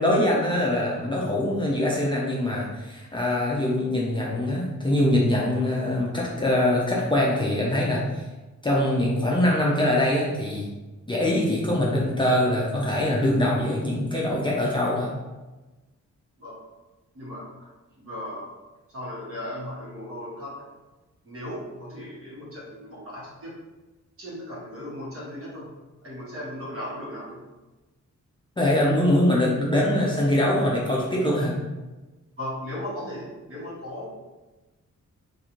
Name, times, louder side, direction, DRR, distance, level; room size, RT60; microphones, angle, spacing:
voice 1, 0.0-8.2 8.6-10.7 11.1-15.1 28.6-31.5, left 1 dB, 15° left, -5 dB, 0.4 m, -23 dB
voice 2, 17.1-17.5 18.0-18.5 18.9-20.6 21.2-23.6 24.2-25.7 26.0-27.4 32.4-34.1, left 1 dB, 45° right, -6 dB, 1.2 m, -36 dB
3.7 x 2.5 x 2.9 m, 1.1 s
wide cardioid pair, 140°, 30 cm